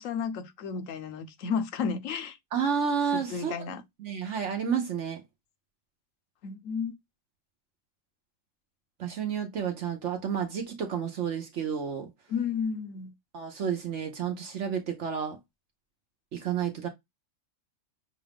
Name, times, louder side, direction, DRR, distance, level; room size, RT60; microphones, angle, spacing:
voice 1, 0.0-2.4 3.1-3.8 6.4-6.9 12.3-13.1, left 6 dB, 75° left, 1.1 m, -32 dB
voice 2, 2.5-3.5 4.0-5.2 9.0-12.1 13.3-15.4 16.3-16.9, right 7 dB, 65° right, 1.0 m, -30 dB
6.3 x 2.4 x 3.3 m
omnidirectional pair, 1.4 m